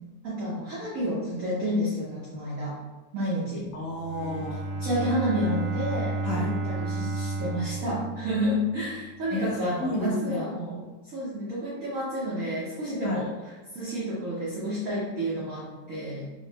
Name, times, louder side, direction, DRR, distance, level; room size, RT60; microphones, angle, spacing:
voice 1, 0.0-2.8 3.1-3.7 4.8-13.4 13.7-16.2, equal, 70° right, -7 dB, 0.7 m, -30 dB
voice 2, 3.7-4.7 6.2-6.5 9.3-9.5 9.8-10.4 13.0-13.2, left 1 dB, 80° left, -2 dB, 0.9 m, -31 dB
Bowed string instrument, 3.9-8.9, right 2 dB, 85° right, 1.6 m, -32 dB
3.8 x 2.1 x 3.2 m, 1.2 s
omnidirectional pair, 2.4 m